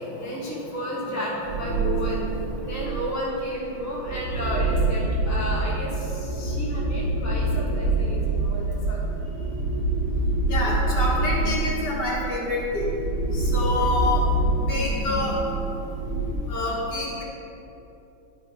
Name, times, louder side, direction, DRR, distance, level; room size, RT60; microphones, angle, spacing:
voice 1, 0.2-2.2 2.6-9.0 9.4-9.5 13.7-14.0, equal, 10° left, -6 dB, 1.3 m, -32 dB
sound 1, 1.5-3.2 3.8-16.3, right 2 dB, 40° right, 0.9 m, -26 dB
voice 2, 10.5-12.9 13.5-14.2 14.7-15.4 16.5-17.2, left 2 dB, 60° left, -6 dB, 2.3 m, -27 dB
11.0 x 4.6 x 5.1 m, 2.9 s
omnidirectional pair, 2.1 m